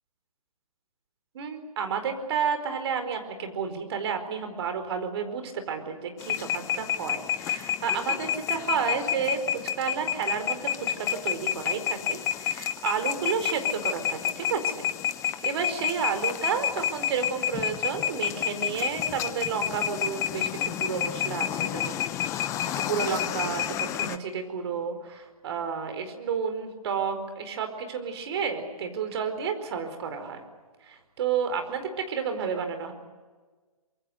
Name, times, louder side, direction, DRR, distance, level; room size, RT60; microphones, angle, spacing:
voice 1, 1.3-14.9 15.4-22.0 22.8-30.4 30.8-32.9, right 6 dB, 45° right, 7 dB, 4.6 m, -31 dB
sound 1, 6.2-24.2, left 10 dB, 15° left, 0.9 m, -30 dB
25.0 x 23.0 x 8.0 m, 1.4 s
figure-of-eight pair, 140°, 19 cm